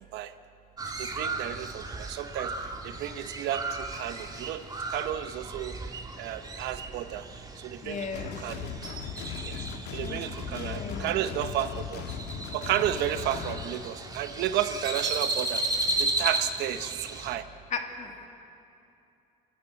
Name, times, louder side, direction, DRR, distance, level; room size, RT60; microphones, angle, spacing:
Crow, 0.8-17.4, right 2 dB, 25° right, 2.1 m, -35 dB
voice 1, 1.0-2.5 3.0-4.6 4.9-5.7 6.2-7.2 7.6-8.1 8.4-8.6 9.4-9.6 9.9-12.0 12.5-15.6 16.0-17.4, right 11 dB, 85° right, 10 dB, 1.0 m, -32 dB
voice 2, 7.8-8.3 10.0-10.2 10.5-11.1 17.7-18.3, left 5 dB, 45° left, 3 dB, 2.6 m, -36 dB
sound 1, 8.1-13.7, left 7 dB, 85° left, 1.7 m, -38 dB
28.5 x 13.5 x 8.2 m, 2.7 s
cardioid pair, 110°, 17 cm